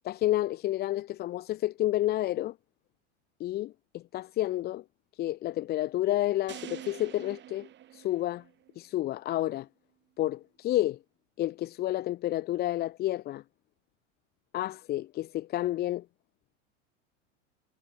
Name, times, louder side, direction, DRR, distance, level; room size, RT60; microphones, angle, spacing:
voice 1, 0.0-2.5 3.4-4.8 5.2-8.4 8.8-9.7 10.2-11.0 11.4-13.4 14.5-16.1, left 15 dB, 25° left, 0.4 m, -30 dB
sound 1, 6.5-8.8, right 12 dB, 30° right, 0.9 m, -46 dB
hypercardioid pair, 100°, 38 cm